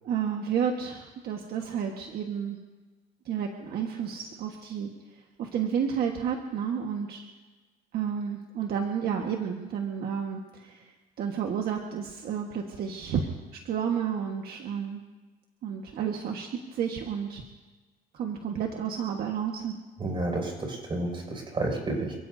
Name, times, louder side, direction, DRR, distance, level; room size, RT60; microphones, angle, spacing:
voice 1, 0.0-2.6 3.2-4.9 5.4-7.3 7.9-10.9 11.2-13.3 13.6-15.0 15.6-17.4 18.1-19.7, right 7 dB, 65° right, 1 dB, 1.6 m, -31 dB
voice 2, 20.0-22.1, right 2 dB, 30° right, 0 dB, 6.3 m, -30 dB
28.5 x 17.0 x 2.8 m, 1.3 s
cardioid pair, 110°, 17 cm